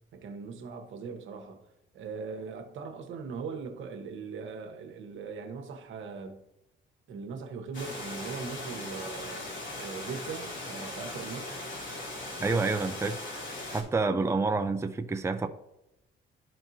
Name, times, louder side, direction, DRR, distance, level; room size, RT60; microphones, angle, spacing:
voice 1, 0.1-1.6 1.9-6.4 7.1-9.5 9.8-11.6, right 5 dB, 75° right, 1.2 m, -40 dB
Water, 7.7-13.8, left 2 dB, 70° left, 2.8 m, -39 dB
voice 2, 12.4-13.2 13.7-15.5, right 3 dB, 15° right, 0.5 m, -28 dB
13.0 x 4.5 x 2.8 m
cardioid pair, 90°, 20 cm